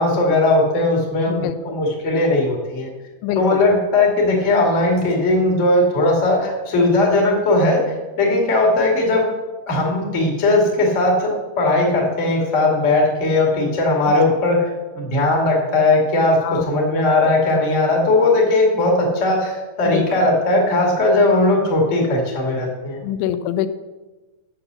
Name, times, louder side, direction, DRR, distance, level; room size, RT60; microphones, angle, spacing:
voice 1, 0.0-2.9 3.3-7.8 8.2-9.2 9.6-14.7 14.9-23.0, left 2 dB, 25° left, -1 dB, 1.6 m, -18 dB
voice 2, 3.2-3.6 16.4-16.6 19.9-20.1 23.0-23.7, left 11 dB, 90° left, 12 dB, 3.1 m, -24 dB
8.9 x 8.5 x 6.9 m, 1.2 s
omnidirectional pair, 5.3 m